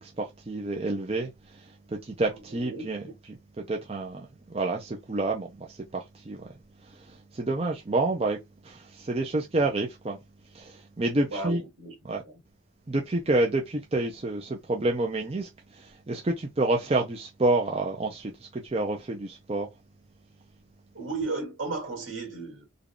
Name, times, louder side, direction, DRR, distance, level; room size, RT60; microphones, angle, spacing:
voice 1, 0.0-3.0 3.6-6.4 6.9-8.4 8.6-10.2 10.5-11.6 12.0-12.2 12.9-19.7, right 2 dB, 30° right, 0.5 m, -29 dB
voice 2, 2.3-3.0 11.3-11.9 12.2-12.4 20.9-22.7, right 3 dB, 70° right, 2.0 m, -35 dB
3.6 x 2.3 x 3.6 m
head